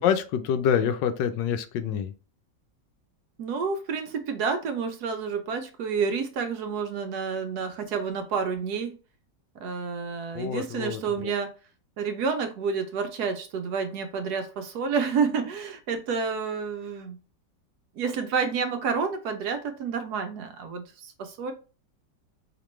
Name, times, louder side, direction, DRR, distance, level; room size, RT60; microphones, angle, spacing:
voice 1, 0.0-2.1 10.3-11.3, left 8 dB, 80° left, 10 dB, 1.2 m, -26 dB
voice 2, 3.4-8.9 9.6-11.5 12.0-17.2 18.0-21.5, right 5 dB, 70° right, 7 dB, 1.1 m, -29 dB
5.1 x 2.9 x 3.1 m, 0.35 s
omnidirectional pair, 1.9 m